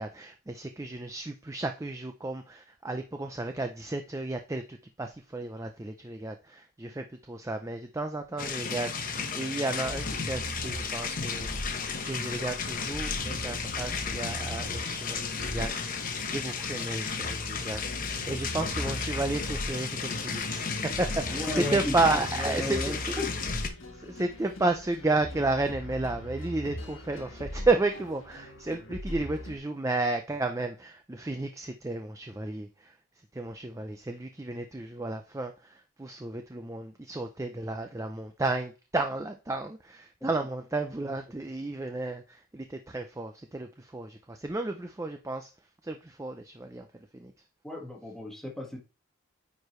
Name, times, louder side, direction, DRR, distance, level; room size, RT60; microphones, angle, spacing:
voice 1, 0.0-11.6 12.0-15.7 16.3-23.1 23.9-32.9 33.3-45.5 45.8-46.9 47.1-47.3, right 2 dB, 15° right, 0.4 m, -32 dB
sound 1, 8.4-23.7, left 5 dB, 40° left, 1.0 m, -34 dB
sound 2, 9.8-29.6, equal, 60° left, 1.5 m, -40 dB
voice 2, 21.3-23.3 47.6-48.8, left 1 dB, ahead, 1.6 m, -35 dB
9.5 x 4.6 x 3.1 m
head